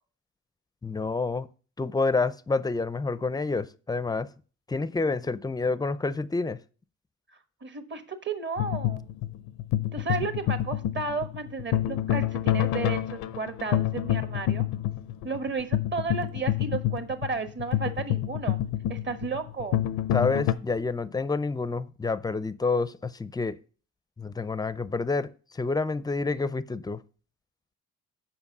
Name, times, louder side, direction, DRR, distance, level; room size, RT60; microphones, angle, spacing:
voice 1, 0.8-1.5 1.8-4.3 4.7-6.6 20.1-23.6 24.2-27.0, left 3 dB, 15° left, 0.5 m, -28 dB
voice 2, 7.6-9.0 9.9-14.7 15.2-18.6 18.9-19.8, right 4 dB, 40° right, 1.3 m, -33 dB
sound 1, 8.6-20.5, left 12 dB, 90° left, 0.6 m, -28 dB
7.2 x 5.3 x 6.6 m
cardioid pair, 90°, 30 cm